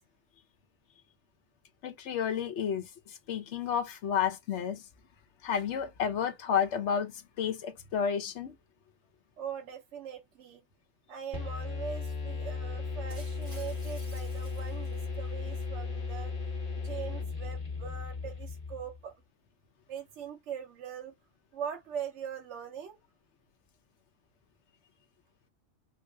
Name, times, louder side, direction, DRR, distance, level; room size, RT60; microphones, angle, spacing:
voice 1, 1.8-4.8 5.4-8.6, left 8 dB, 75° left, 1.0 m, -31 dB
voice 2, 9.4-10.6 11.1-16.3 16.8-19.1 19.9-21.1 21.5-23.0, right 8 dB, 80° right, 1.0 m, -41 dB
sound 1, 11.3-19.0, left 4 dB, 35° left, 1.7 m, -36 dB
Shatter, 13.1-15.5, right 2 dB, 35° right, 1.9 m, -54 dB
3.9 x 2.8 x 2.2 m
omnidirectional pair, 1.2 m